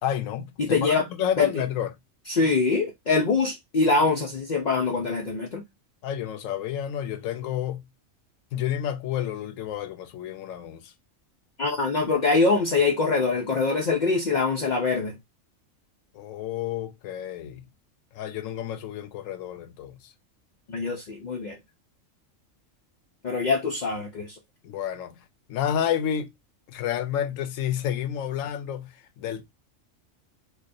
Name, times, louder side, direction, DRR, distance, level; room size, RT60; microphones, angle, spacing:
voice 1, 0.0-1.9 6.0-7.9 8.5-10.9 16.1-17.6 18.1-20.1 24.6-25.2 25.5-26.3 26.7-29.4, left 10 dB, 75° left, 1.0 m, -30 dB
voice 2, 0.6-1.0 1.4-1.5 2.3-5.6 11.6-15.1 20.7-21.6 23.2-24.3, left 3 dB, 55° left, 0.5 m, -24 dB
4.6 x 2.2 x 2.5 m
omnidirectional pair, 1.4 m